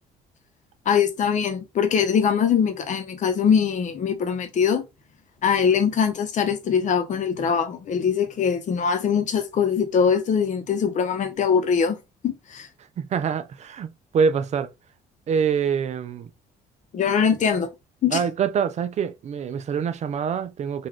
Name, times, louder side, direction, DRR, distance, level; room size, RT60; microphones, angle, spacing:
voice 1, 0.9-4.8 5.4-12.0 12.2-12.7 16.9-17.7 18.0-18.2, left 7 dB, 45° left, 0.9 m, -22 dB
voice 2, 13.0-14.7 15.3-16.3 18.1-20.9, right 6 dB, 40° right, 0.5 m, -25 dB
3.9 x 2.5 x 3.0 m
cardioid pair, 110°, 17 cm